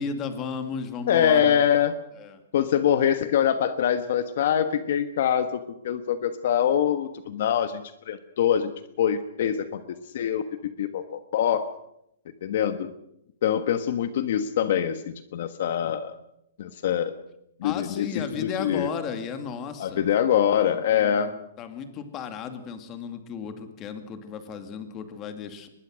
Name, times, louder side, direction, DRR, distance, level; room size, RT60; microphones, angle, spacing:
voice 1, 0.0-1.7 2.2-2.4 17.6-20.0 20.7-25.7, left 6 dB, 20° left, 8 dB, 2.2 m, -35 dB
voice 2, 1.1-1.9 2.5-8.7 9.0-9.8 10.1-11.7 12.4-12.9 13.4-16.1 16.6-17.2 17.6-18.9 19.8-21.4, left 9 dB, 55° left, 10 dB, 1.3 m, -24 dB
23.5 x 21.0 x 6.4 m, 0.78 s
hypercardioid pair, 170°, 0 cm